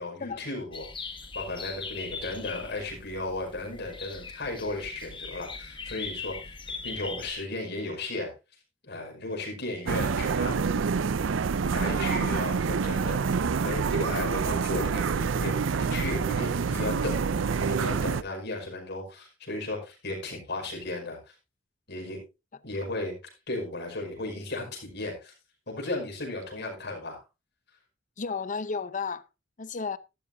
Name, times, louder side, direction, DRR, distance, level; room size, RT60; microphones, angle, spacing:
voice 1, 0.0-6.6 6.8-8.3 8.8-10.8 11.7-13.4 13.6-21.3 21.9-22.2 22.6-23.2 23.5-25.3 25.7-27.2, left 2 dB, 60° left, 5.3 m, -35 dB
sound 1, 0.7-7.3, left 4 dB, 25° left, 1.5 m, -40 dB
sound 2, 9.9-18.2, right 5 dB, 70° right, 0.5 m, -27 dB
voice 2, 28.2-29.2 29.6-30.0, left 5 dB, 40° left, 0.7 m, -33 dB
12.5 x 12.0 x 2.7 m
head